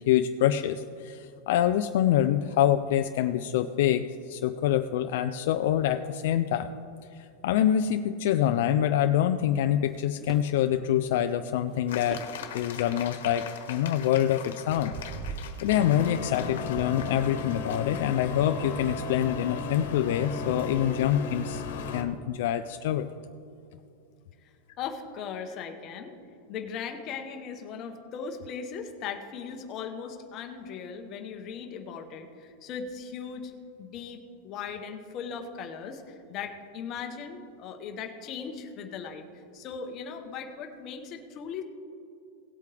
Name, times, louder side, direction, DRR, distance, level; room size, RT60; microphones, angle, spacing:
voice 1, 0.1-6.7 7.2-12.2 12.5-14.9 15.6-21.6 21.9-23.1, left 11 dB, 55° left, 8 dB, 0.4 m, -26 dB
sound 1, 9.9-10.5 11.7-11.9 12.1-12.7 13.4-13.5 13.9-16.5 16.7-17.2 18.4-19.6 19.9-20.3, right 5 dB, 15° right, 0.5 m, -43 dB
sound 2, 11.9-18.3, left 8 dB, 90° left, 1.3 m, -42 dB
sound 3, 15.7-22.0, left 4 dB, 70° left, 1.3 m, -35 dB
voice 2, 24.8-26.2 26.5-33.5 33.8-41.6, left 6 dB, 25° left, 5 dB, 0.9 m, -38 dB
18.0 x 8.3 x 3.4 m, 2.5 s
supercardioid pair, 175°, 0 cm